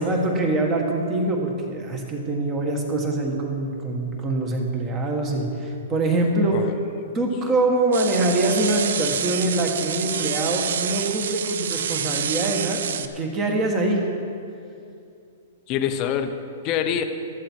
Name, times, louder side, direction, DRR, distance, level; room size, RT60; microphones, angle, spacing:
voice 1, 0.0-6.5 7.1-14.0, right 2 dB, 15° right, 2 dB, 1.4 m, -24 dB
voice 2, 6.5-7.1 15.7-16.3 16.6-17.0, left 9 dB, 25° left, 7 dB, 0.7 m, -26 dB
sound 1, 7.9-13.0, right 8 dB, 65° right, 0.7 m, -28 dB
14.0 x 13.0 x 4.5 m, 2.5 s
hypercardioid pair, 175°, 0 cm